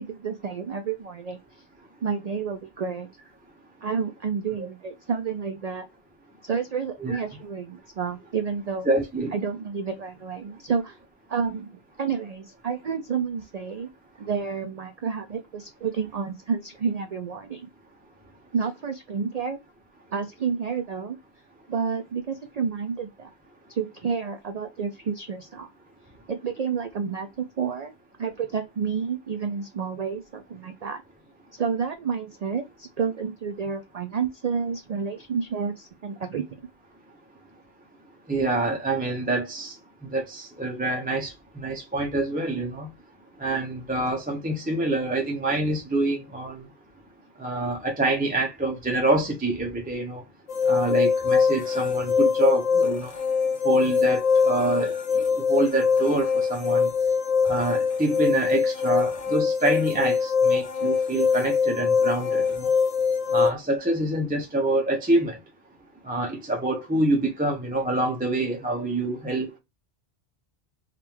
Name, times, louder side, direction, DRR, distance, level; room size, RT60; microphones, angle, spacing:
voice 1, 0.0-1.4 2.0-3.1 3.8-5.8 6.4-8.9 9.3-11.0 11.3-11.7 12.0-13.9 14.2-17.7 18.5-19.6 20.1-21.2 21.7-23.3 23.7-25.7 26.3-27.9 28.2-31.0 31.6-36.5, right 6 dB, 55° right, 0.4 m, -30 dB
voice 2, 8.9-9.3 38.3-39.7 40.1-42.9 43.4-46.6 47.4-50.2 50.7-53.1 53.6-54.9 55.5-56.9 57.5-62.7 63.3-65.4 66.0-69.6, right 2 dB, 10° right, 0.6 m, -26 dB
sound 1, 50.5-63.5, left 5 dB, 40° left, 0.8 m, -23 dB
3.5 x 2.5 x 4.4 m
omnidirectional pair, 1.2 m